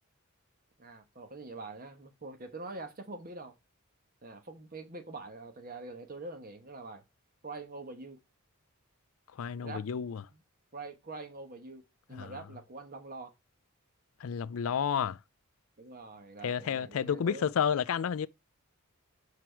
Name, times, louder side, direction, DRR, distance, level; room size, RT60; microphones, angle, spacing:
voice 1, 0.8-3.5 4.2-7.0 7.4-8.2 9.6-9.8 10.3-10.4 10.7-11.8 12.1-13.3 15.8-17.5, right 3 dB, 40° right, 1.2 m, -44 dB
voice 2, 9.3-10.2 12.1-12.4 14.2-15.2 16.4-18.3, left 7 dB, 75° left, 0.4 m, -31 dB
6.1 x 4.8 x 4.5 m
head